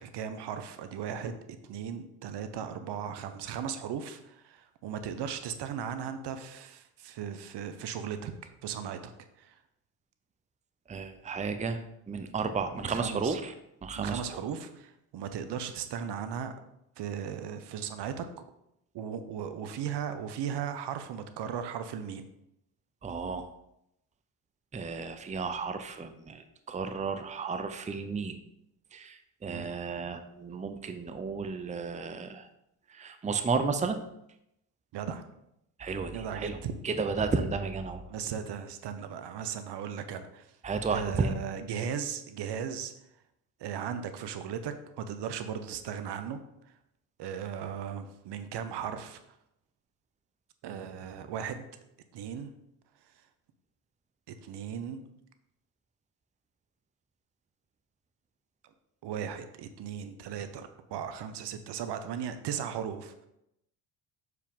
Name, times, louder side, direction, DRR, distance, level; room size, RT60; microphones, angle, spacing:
voice 1, 0.0-1.4 1.7-9.1 9.4-9.6 12.7-13.4 13.9-16.5 17.0-18.3 18.9-22.3 29.5-29.7 34.9-35.2 36.1-36.7 38.1-40.5 40.9-42.9 43.6-46.4 47.2-49.2 50.6-51.7 52.1-52.5 54.3-55.0 59.0-63.3, right 8 dB, 60° right, 9 dB, 0.8 m, -37 dB
voice 2, 10.9-11.8 12.1-13.5 13.8-14.2 23.0-23.5 24.7-28.3 28.9-32.5 32.9-34.0 35.8-36.6 36.8-38.0 40.6-41.3, right 4 dB, 15° right, 8 dB, 0.6 m, -33 dB
6.9 x 4.8 x 3.7 m, 0.82 s
supercardioid pair, 65°, 46 cm